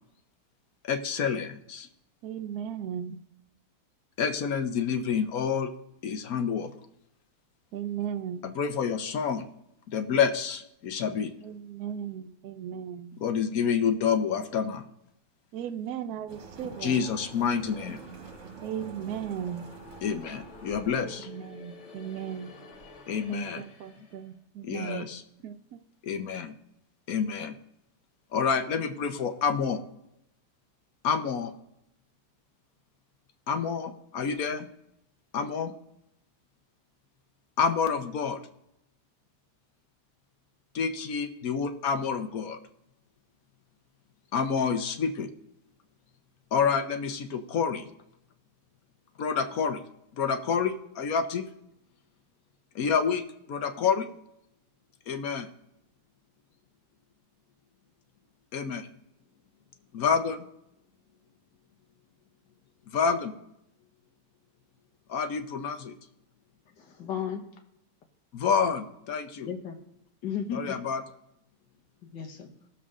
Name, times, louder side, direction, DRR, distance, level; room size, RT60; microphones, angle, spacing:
voice 1, 0.8-1.9 4.2-5.7 6.0-6.7 8.4-9.5 9.9-11.3 13.2-14.8 16.8-18.0 20.0-21.3 23.1-23.6 24.7-25.2 26.0-26.5 27.1-27.6 28.3-29.8 31.0-31.5 33.5-34.7 35.3-35.7 37.6-38.4 40.7-42.6 44.3-45.3 46.5-47.9 49.2-49.8 50.2-51.4 52.7-53.2 53.5-54.1 55.1-55.5 58.5-58.9 59.9-60.5 62.9-63.3 65.1-65.9 68.3-69.5 70.5-71.0, left 6 dB, 60° left, 1.2 m, -28 dB
voice 2, 2.2-3.2 7.7-8.4 11.4-13.2 15.5-17.0 18.6-19.7 21.3-22.5 23.3-25.1 25.4-25.8, right 9 dB, 65° right, 1.1 m, -36 dB
sound 1, 16.0-24.3, left 3 dB, 45° left, 1.4 m, -51 dB
sound 2, 16.3-21.1, right 5 dB, 45° right, 1.4 m, -47 dB
voice 3, 66.8-67.4 69.4-69.8 70.2-70.8 72.0-72.5, left 7 dB, 85° left, 2.0 m, -34 dB
19.0 x 7.1 x 3.7 m
omnidirectional pair, 1.9 m